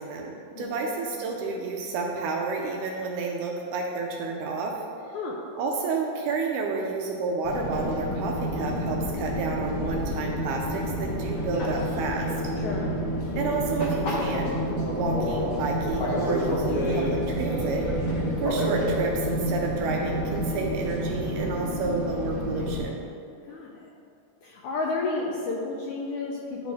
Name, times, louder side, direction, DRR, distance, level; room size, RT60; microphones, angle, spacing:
voice 1, 0.0-4.8 5.6-12.3 13.4-14.6 14.9-17.9 18.4-22.9, right 4 dB, 80° right, 0 dB, 2.0 m, -30 dB
voice 2, 0.6-0.9 5.1-5.4 12.6-13.0 23.4-23.7 24.4-26.7, left 3 dB, 80° left, -2 dB, 1.8 m, -31 dB
Fixed-wing aircraft airplane, 7.4-22.8, equal, 55° left, 1.6 m, -29 dB
11.5 x 4.2 x 3.5 m, 2.5 s
omnidirectional pair, 4.0 m